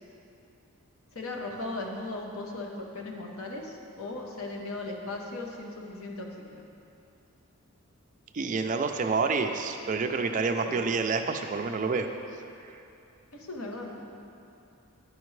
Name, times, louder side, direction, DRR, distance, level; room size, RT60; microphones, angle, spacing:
voice 1, 1.1-6.6 10.7-10.8 13.3-14.1, left 2 dB, 75° left, 1 dB, 0.8 m, -37 dB
voice 2, 8.3-12.1 12.6-12.7, right 4 dB, 35° right, 6 dB, 0.3 m, -28 dB
10.5 x 5.1 x 3.2 m, 2.7 s
head